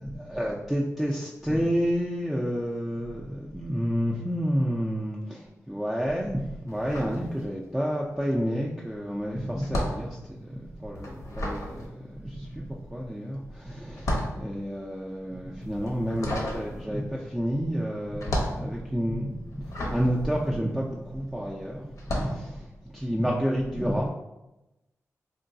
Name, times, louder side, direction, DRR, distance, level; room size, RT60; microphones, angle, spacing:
voice 1, 0.2-24.1, equal, 5° right, -3 dB, 0.4 m, -30 dB
sound 1, 6.7-7.9 8.2-21.4 21.9-22.4, left 1 dB, 65° left, 0.7 m, -34 dB
3.8 x 2.2 x 2.6 m, 0.95 s
cardioid pair, 80°, 6 cm